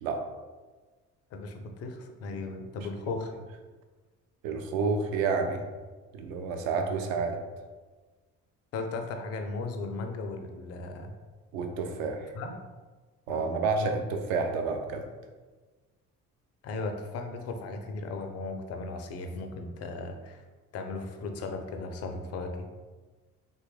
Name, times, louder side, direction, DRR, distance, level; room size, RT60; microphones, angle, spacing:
voice 1, 1.3-3.3 8.7-11.1 12.3-12.6 13.3-13.9 16.6-20.4 20.7-22.7, left 3 dB, 35° left, 5 dB, 0.4 m, -36 dB
voice 2, 4.4-5.6 6.1-7.4 11.5-12.3 13.3-15.0, right 4 dB, 65° right, 5 dB, 0.5 m, -29 dB
3.0 x 2.3 x 3.1 m, 1.3 s
figure-of-eight pair, 50°, 45 cm